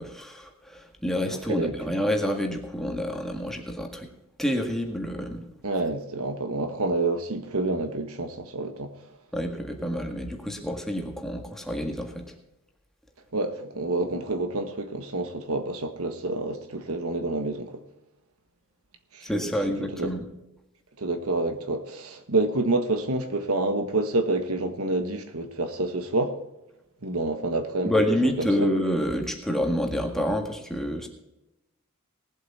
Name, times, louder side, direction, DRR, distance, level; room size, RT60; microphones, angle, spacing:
voice 1, 0.0-4.1 4.4-5.5 9.3-12.3 19.2-20.3 27.8-31.1, equal, ahead, 1.8 m, -28 dB
voice 2, 1.3-1.7 5.6-8.9 13.3-17.8 19.1-19.5 19.8-20.1 21.0-26.4 27.0-28.7, right 2 dB, 70° right, 1.4 m, -28 dB
19.0 x 7.8 x 4.3 m
head